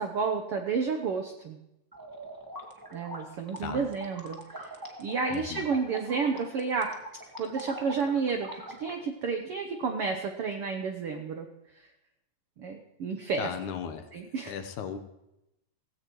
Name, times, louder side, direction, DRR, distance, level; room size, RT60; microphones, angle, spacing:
voice 1, 0.0-1.6 2.9-4.7 5.0-7.0 7.4-11.5 11.8-11.9 12.6-13.5 14.1-14.5, right 5 dB, 75° right, 4 dB, 1.3 m, -31 dB
sound 1, 1.9-8.9, right 1 dB, 25° right, 0.4 m, -43 dB
voice 2, 5.3-5.6 13.4-14.1 14.4-15.0, left 8 dB, 70° left, 9 dB, 2.2 m, -36 dB
17.5 x 16.0 x 3.1 m, 0.89 s
omnidirectional pair, 3.8 m